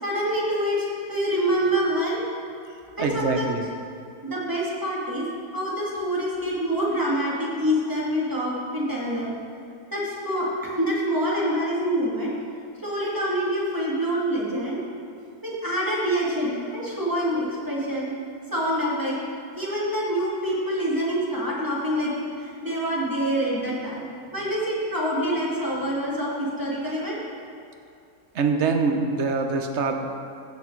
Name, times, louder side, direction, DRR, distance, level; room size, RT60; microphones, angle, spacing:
voice 1, 0.0-2.2 3.0-3.5 4.2-5.2 5.5-9.3 9.9-10.5 10.8-12.3 12.8-14.8 15.4-18.1 18.5-19.2 19.6-24.0 24.3-27.2, equal, 15° right, -6 dB, 2.3 m, -26 dB
voice 2, 3.0-3.6 28.3-30.1, right 4 dB, 55° right, 4 dB, 1.1 m, -24 dB
16.0 x 6.0 x 4.7 m, 2.5 s
omnidirectional pair, 1.6 m